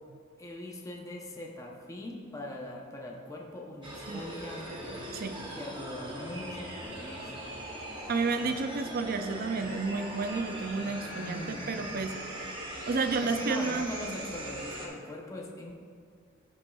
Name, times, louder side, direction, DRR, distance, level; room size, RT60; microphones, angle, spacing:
voice 1, 0.4-5.1 5.6-7.5 11.1-11.9 13.2-15.7, left 1 dB, 15° left, -1 dB, 0.8 m, -41 dB
sound 1, 3.8-14.9, right 1 dB, 25° right, 1.1 m, -40 dB
voice 2, 8.1-12.2 12.9-13.9, right 4 dB, 50° right, 8 dB, 0.5 m, -31 dB
14.0 x 5.4 x 2.4 m, 2.1 s
head